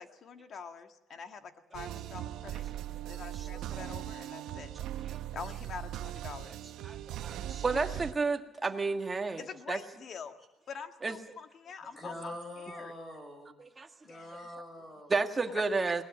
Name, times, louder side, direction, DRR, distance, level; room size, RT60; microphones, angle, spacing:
voice 1, 0.0-2.6 3.0-4.7 5.3-6.5 9.4-10.3 10.7-12.3 12.7-12.9 14.1-14.5, left 6 dB, 45° left, 7 dB, 1.7 m, -45 dB
sound 1, 1.7-8.1, right 12 dB, 75° right, 0.9 m, -39 dB
voice 2, 3.3-4.0 4.7-5.2 6.4-6.6 6.8-9.8 11.0-11.2 13.6-13.9 15.1-16.0, right 4 dB, 20° right, 5 dB, 1.7 m, -32 dB
voice 3, 11.9-13.6 14.0-15.1, left 1 dB, 20° left, 5 dB, 6.5 m, -44 dB
21.0 x 19.5 x 7.5 m, 0.90 s
cardioid pair, 140°, 0 cm